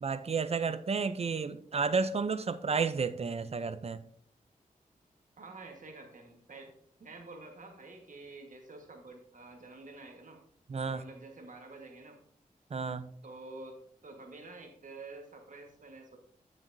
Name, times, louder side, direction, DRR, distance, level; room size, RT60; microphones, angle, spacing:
voice 1, 0.0-4.0 10.7-11.0 12.7-13.1, right 5 dB, 45° right, 0.5 m, -32 dB
voice 2, 5.4-6.7 7.0-10.4 10.9-12.2 13.2-16.2, right 3 dB, 65° right, 1.5 m, -49 dB
9.6 x 7.4 x 2.7 m
wide cardioid pair, 95°, 15 cm